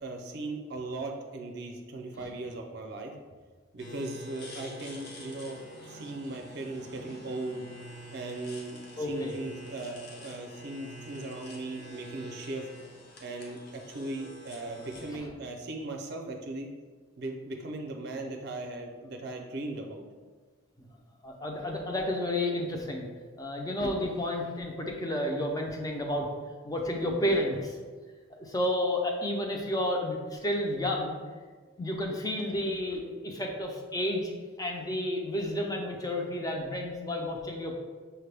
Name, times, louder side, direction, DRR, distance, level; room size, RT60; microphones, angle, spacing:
voice 1, 0.0-3.2 3.7-7.6 8.1-12.7 13.2-16.7 17.2-20.0, right 2 dB, 55° right, 3 dB, 0.5 m, -38 dB
sound 1, 3.8-15.1, equal, 50° left, 0.7 m, -47 dB
voice 2, 9.0-9.4 15.1-15.3 21.2-23.0 23.4-26.3 26.6-27.8 28.4-31.2 31.8-34.3 34.6-37.8, left 1 dB, 20° left, 1 dB, 0.5 m, -31 dB
5.7 x 2.2 x 3.3 m, 1.4 s
head